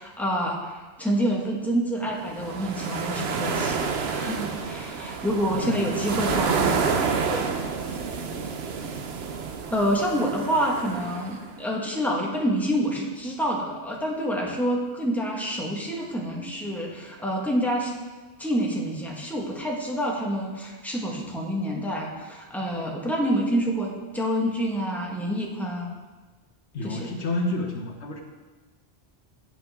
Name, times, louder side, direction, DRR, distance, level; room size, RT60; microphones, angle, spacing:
voice 1, 0.0-6.6 7.3-8.0 9.7-17.9 18.4-25.9 26.8-27.1, equal, ahead, -2 dB, 1.5 m, -27 dB
sound 1, 2.2-11.5, right 5 dB, 70° right, 1.0 m, -29 dB
voice 2, 5.5-6.8 26.7-28.2, left 2 dB, 85° left, 2 dB, 1.5 m, -31 dB
17.0 x 6.0 x 3.6 m, 1.3 s
omnidirectional pair, 1.1 m